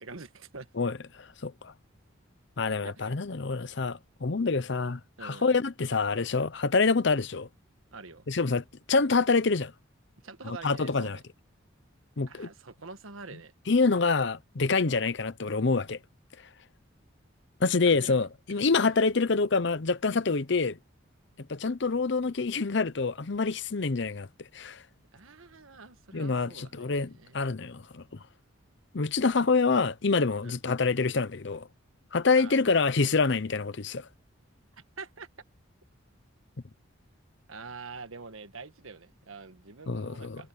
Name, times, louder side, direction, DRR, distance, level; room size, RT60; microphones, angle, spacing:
voice 1, 0.0-0.7 2.8-3.1 5.2-5.5 7.9-8.3 10.2-11.2 12.3-13.5 17.9-18.3 25.1-27.5 30.4-30.6 32.4-32.8 35.0-35.3 37.5-40.5, right 4 dB, 80° right, 1.4 m, -45 dB
voice 2, 0.8-1.7 2.6-7.5 8.3-9.7 10.4-11.2 12.2-12.5 13.7-16.0 17.6-20.8 21.5-24.3 24.5-24.8 26.1-28.0 28.9-31.7 32.1-34.1 39.9-40.4, left 4 dB, 60° left, 0.7 m, -26 dB
head